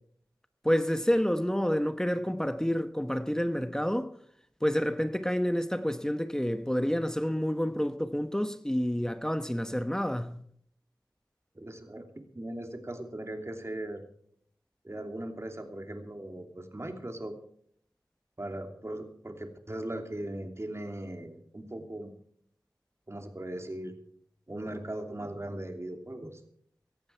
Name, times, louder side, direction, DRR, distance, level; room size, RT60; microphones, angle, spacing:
voice 1, 0.6-4.1 4.6-10.4, equal, 5° left, 1.1 m, -29 dB
voice 2, 11.6-12.0 12.3-14.0 14.8-17.3 18.4-22.1 23.1-23.9 24.5-26.4, right 1 dB, 35° right, 2.9 m, -39 dB
17.0 x 14.5 x 4.6 m
wide cardioid pair, 50°, 8 cm